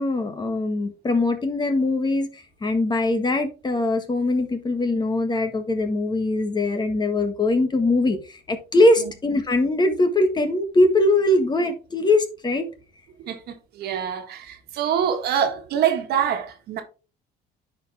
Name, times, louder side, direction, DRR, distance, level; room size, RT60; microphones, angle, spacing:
voice 1, 0.0-12.7, left 2 dB, 25° left, 1.6 m, -22 dB
voice 2, 13.2-16.8, right 8 dB, 70° right, 1.6 m, -25 dB
10.0 x 4.9 x 3.5 m
cardioid pair, 110°, 17 cm